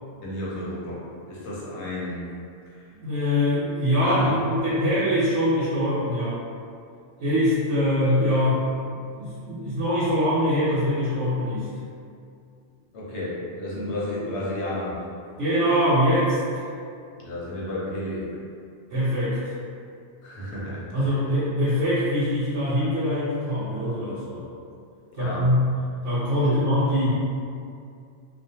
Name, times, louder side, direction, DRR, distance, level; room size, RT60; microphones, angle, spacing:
voice 1, 0.2-2.3 2.7-2.9 4.0-4.4 4.8-4.9 12.9-15.0 17.2-18.3 20.2-20.9 25.2-25.5 26.4-26.5, left 1 dB, 70° left, -6 dB, 0.9 m, -32 dB
voice 2, 3.0-6.4 7.2-11.7 15.4-16.7 18.9-19.5 20.9-24.4 25.1-25.7 26.0-27.1, equal, 75° right, -10 dB, 1.0 m, -23 dB
2.4 x 2.1 x 2.6 m, 2.4 s
omnidirectional pair, 1.2 m